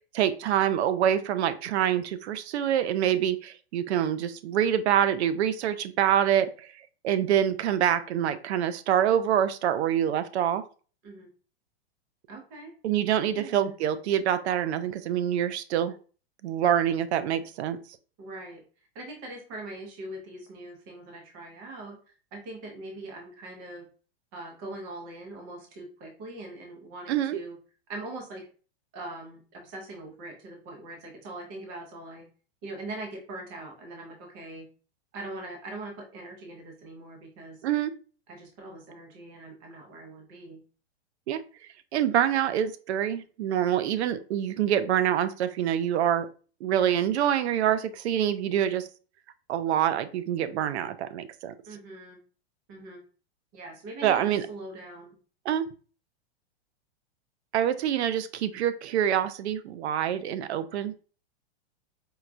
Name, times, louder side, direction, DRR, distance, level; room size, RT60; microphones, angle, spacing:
voice 1, 0.0-6.7 7.0-10.6 12.8-15.9 16.4-17.8 27.1-27.4 37.6-37.9 41.3-41.4 41.9-46.3 46.6-48.9 49.5-51.5 54.0-54.5 55.5-55.7 57.5-60.9, right 10 dB, 85° right, 12 dB, 0.5 m, -26 dB
voice 2, 12.3-12.7 13.4-13.7 18.2-18.6 18.9-23.9 24.3-27.6 27.9-28.5 28.9-32.3 32.6-34.7 35.1-37.6 38.3-40.6 51.7-52.2 52.7-53.0 53.5-55.2, right 2 dB, 20° right, 1 dB, 0.5 m, -42 dB
4.6 x 2.2 x 2.5 m, 0.38 s
supercardioid pair, 175°, 33 cm